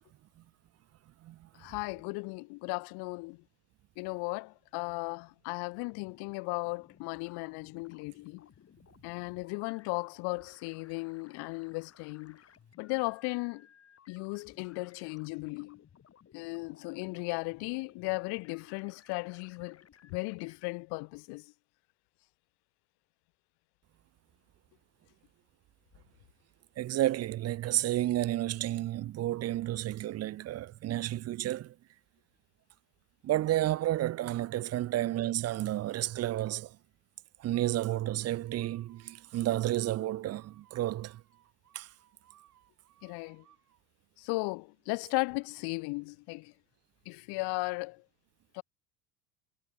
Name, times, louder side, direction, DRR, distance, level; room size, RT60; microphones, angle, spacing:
voice 1, 1.6-3.4 4.0-8.5 9.0-12.4 12.8-13.7 14.1-15.8 16.3-21.5 43.0-43.4 44.2-46.5 47.1-48.0 48.5-48.6, left 29 dB, 60° left, 1.2 m, -36 dB
sound 1, 5.7-20.6, left 8 dB, 35° left, 5.2 m, -60 dB
voice 2, 26.8-31.7 33.2-36.7 37.4-41.2 41.7-41.9, right 14 dB, 35° right, 0.7 m, -31 dB
sound 2, 35.1-35.9 36.3-36.8 37.5-43.8, right 13 dB, 90° right, 7.2 m, -66 dB
hypercardioid pair, 90°, 44 cm